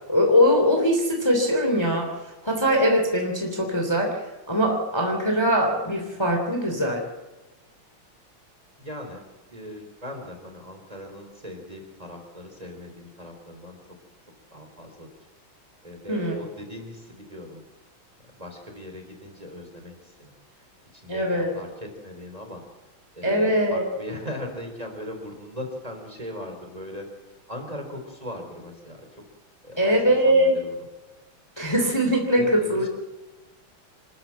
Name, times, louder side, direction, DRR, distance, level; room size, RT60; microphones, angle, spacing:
voice 1, 0.1-7.0 16.1-16.3 21.1-21.5 23.2-23.9 29.8-30.5 31.6-32.9, equal, 10° left, 2 dB, 2.9 m, -22 dB
voice 2, 8.8-9.2 9.5-13.8 14.5-15.1 15.8-17.6 18.3-20.3 20.9-22.6 23.1-27.1 27.5-29.2 29.6-30.8 32.4-32.9, left 1 dB, 15° right, 4 dB, 3.7 m, -39 dB
26.5 x 13.5 x 7.5 m, 1.1 s
omnidirectional pair, 2.3 m